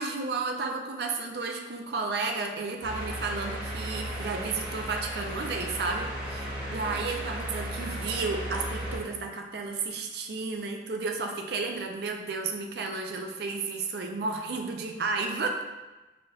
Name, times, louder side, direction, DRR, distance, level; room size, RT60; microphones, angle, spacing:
voice 1, 0.0-15.6, right 4 dB, 55° right, 3 dB, 0.4 m, -32 dB
sound 1, 2.8-9.0, equal, 25° right, 1.1 m, -35 dB
4.8 x 2.8 x 2.3 m, 1.1 s
head